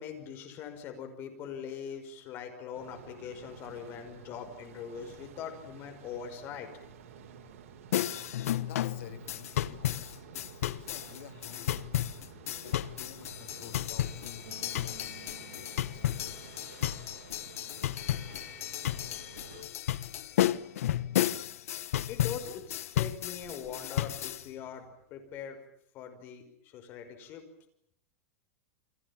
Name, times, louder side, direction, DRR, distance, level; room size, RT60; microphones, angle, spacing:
voice 1, 0.0-6.7 21.8-25.6 25.9-27.4, left 7 dB, 30° left, 6 dB, 5.6 m, -42 dB
sound 1, 2.7-19.6, right 7 dB, 80° right, 6.8 m, -51 dB
sound 2, 7.9-24.4, left 12 dB, 85° left, 1.2 m, -33 dB
voice 2, 8.6-10.2 10.4-11.9 12.6-16.1, left 10 dB, 60° left, 7 dB, 3.5 m, -50 dB
Bass guitar, 14.5-17.6, right 9 dB, 55° right, 5.2 m, -56 dB
30.0 x 25.0 x 7.4 m, 0.75 s
supercardioid pair, 170°, 8 cm